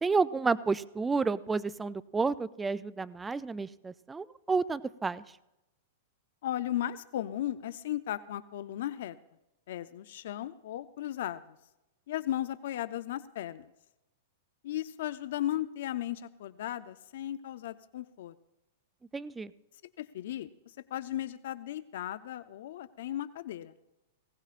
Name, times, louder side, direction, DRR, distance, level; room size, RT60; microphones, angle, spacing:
voice 1, 0.0-5.2 19.1-19.5, right 4 dB, 10° right, 16 dB, 0.4 m, -30 dB
voice 2, 6.4-9.2 9.7-11.4 12.1-13.7 14.6-18.3 20.0-23.7, left 12 dB, 70° left, 13 dB, 0.5 m, -36 dB
19.5 x 17.5 x 2.5 m, 0.92 s
hypercardioid pair, 135°, 0 cm